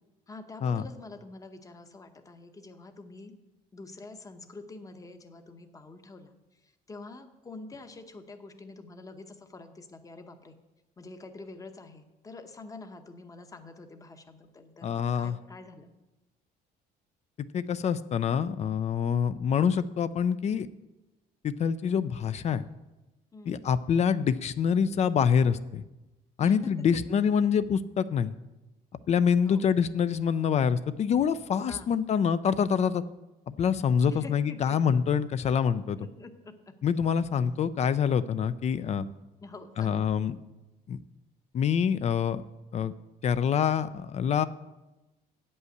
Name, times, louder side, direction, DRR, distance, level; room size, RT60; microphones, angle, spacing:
voice 1, 0.3-3.3 3.7-10.6 11.0-15.9 23.3-23.6 26.4-27.3 29.4-29.7 31.7-31.9 34.0-34.8 35.0-35.2 36.0-36.7 39.4-40.1, left 3 dB, 20° left, 8 dB, 0.9 m, -46 dB
voice 2, 14.8-15.4 17.4-20.7 21.4-22.6 23.5-25.8 26.4-28.3 29.1-33.0 33.5-36.0 36.8-39.1 39.8-40.4 40.9-41.0 41.5-42.4 42.7-42.9 43.2-44.4, left 7 dB, 40° left, 14 dB, 0.4 m, -26 dB
8.4 x 5.5 x 7.9 m, 1.0 s
cardioid pair, 110°, 17 cm